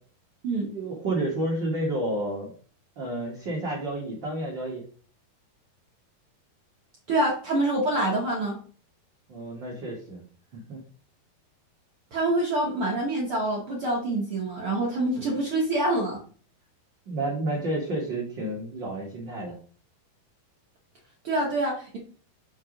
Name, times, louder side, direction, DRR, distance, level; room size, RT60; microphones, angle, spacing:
voice 1, 0.7-2.5 3.0-4.8 9.3-10.2 10.5-10.8 17.1-19.5, right 1 dB, 45° right, -3 dB, 1.5 m, -30 dB
voice 2, 7.1-8.6 12.1-16.2 21.2-22.0, right 1 dB, 75° right, -2 dB, 1.2 m, -26 dB
6.4 x 4.7 x 5.1 m, 0.43 s
omnidirectional pair, 4.4 m